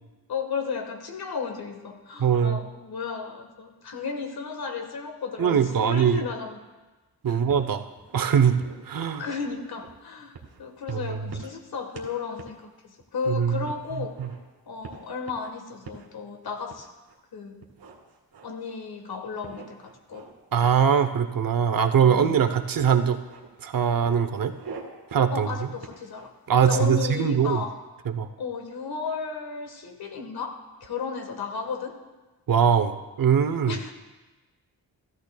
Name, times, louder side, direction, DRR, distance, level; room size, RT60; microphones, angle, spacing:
voice 1, 0.3-6.6 7.3-7.4 9.2-14.2 14.7-16.9 17.3-17.6 18.4-20.3 22.0-22.3 25.3-26.3 26.6-27.8 28.4-31.9 33.7-33.9, left 5 dB, 75° left, 4 dB, 1.5 m, -34 dB
voice 2, 2.2-2.6 5.4-6.2 7.2-7.9 8.1-9.3 10.9-11.3 13.3-13.7 14.0-14.3 20.5-23.2 23.6-24.5 25.1-25.5 26.5-27.6 28.1-28.3 32.5-33.8, right 7 dB, 60° right, 9 dB, 0.8 m, -22 dB
sound 1, 7.5-8.2 8.6-9.9 10.3-10.6 10.9-11.6 11.9-12.1 12.4-12.6 13.0-13.1 13.7-14.4 14.8-15.5 15.8-16.1 16.7-17.2 17.6-18.7 19.4-20.3 20.6-21.5 22.5-22.7 23.0-23.5 24.0-24.8 25.1-25.3 25.8-26.9, right 5 dB, 80° right, 1.9 m, -45 dB
15.0 x 13.0 x 2.3 m, 1.2 s
wide cardioid pair, 85°, 38 cm